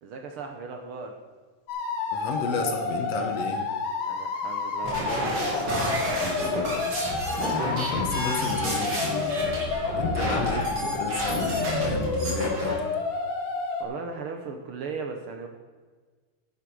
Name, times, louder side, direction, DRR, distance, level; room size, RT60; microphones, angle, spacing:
voice 1, 0.0-1.2 4.0-6.5 10.1-10.8 13.8-15.5, right 4 dB, 75° right, 4 dB, 1.3 m, -37 dB
sound 1, 1.7-13.8, left 4 dB, 80° left, 3.0 m, -30 dB
voice 2, 2.1-3.7 7.7-9.5 9.9-12.8, left 4 dB, 65° left, 5 dB, 2.0 m, -32 dB
sound 2, 4.8-12.8, equal, 40° right, 3.3 m, -30 dB
11.0 x 10.0 x 4.7 m, 1.4 s
omnidirectional pair, 3.6 m